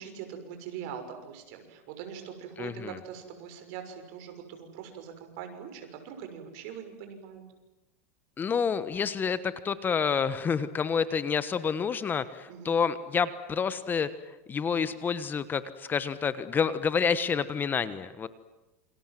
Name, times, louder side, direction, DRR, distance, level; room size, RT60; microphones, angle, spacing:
voice 1, 0.0-7.4 12.5-12.8, right 8 dB, 60° right, 6 dB, 6.3 m, -42 dB
voice 2, 2.6-3.0 8.4-14.1 14.5-18.3, left 6 dB, 20° left, 13 dB, 1.3 m, -28 dB
28.5 x 26.0 x 7.8 m, 1.0 s
supercardioid pair, 125°, 9 cm